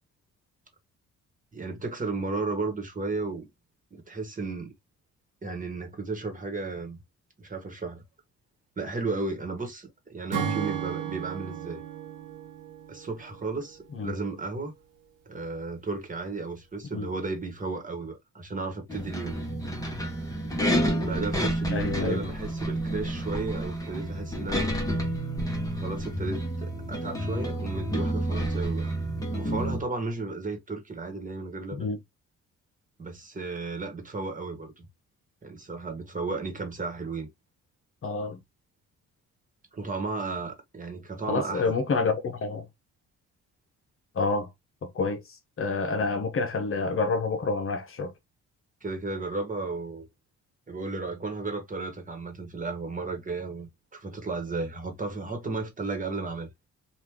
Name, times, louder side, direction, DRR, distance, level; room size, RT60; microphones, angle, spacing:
voice 1, 1.5-3.5 3.9-4.7 5.4-7.0 7.4-8.0 8.8-11.8 12.9-14.7 15.3-19.4 20.8-24.7 25.7-28.9 29.3-31.9 33.0-34.8 35.4-37.3 39.7-41.7 48.8-50.1 50.7-56.5, right 3 dB, 25° right, 1.4 m, -34 dB
Acoustic guitar / Strum, 10.3-13.7, right 10 dB, 85° right, 1.1 m, -34 dB
voice 2, 10.4-10.7 13.9-14.2 16.9-17.1 21.7-22.2 31.7-32.0 38.0-38.4 41.3-42.7 44.2-44.5 44.9-45.2 45.6-48.1, left 4 dB, 45° left, 0.9 m, -28 dB
sound 1, 18.9-29.8, right 1 dB, 10° left, 1.3 m, -29 dB
3.1 x 2.5 x 3.4 m
cardioid pair, 90°, 30 cm